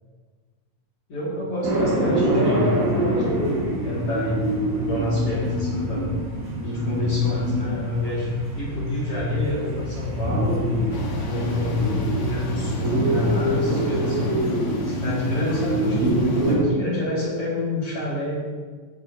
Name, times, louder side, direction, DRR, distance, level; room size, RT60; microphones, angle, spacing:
voice 1, 1.1-2.9 3.2-3.6 3.8-4.4 4.8-6.1 6.6-8.3 8.5-10.7 11.3-14.4 14.9-16.2 16.5-18.4, left 2 dB, 45° left, -6 dB, 2.9 m, -27 dB
sound 1, 1.6-16.7, right 1 dB, 75° right, 5.2 m, -25 dB
sound 2, 10.9-16.6, left 1 dB, 70° left, 3.0 m, -37 dB
15.0 x 10.0 x 2.8 m, 1.5 s
omnidirectional pair, 4.0 m